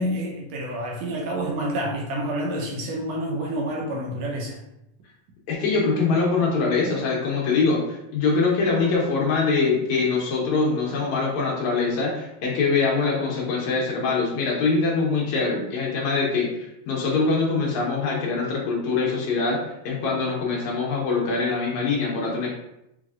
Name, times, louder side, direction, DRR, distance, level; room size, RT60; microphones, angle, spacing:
voice 1, 0.0-4.6, right 1 dB, 75° right, -2 dB, 1.8 m, -28 dB
voice 2, 5.5-19.6 19.8-22.5, left 4 dB, 80° left, -2 dB, 2.3 m, -23 dB
5.1 x 3.3 x 2.4 m, 0.85 s
omnidirectional pair, 3.3 m